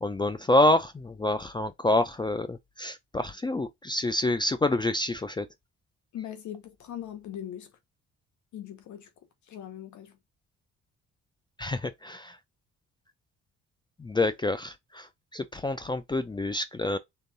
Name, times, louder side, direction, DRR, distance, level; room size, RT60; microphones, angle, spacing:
voice 1, 0.0-5.5 11.6-12.4 14.0-15.1 15.3-17.0, left 2 dB, 15° left, 0.4 m, -27 dB
voice 2, 6.1-7.7 8.5-9.1 9.5-10.2, left 10 dB, 70° left, 0.8 m, -40 dB
3.8 x 3.8 x 2.6 m
cardioid pair, 90°, 30 cm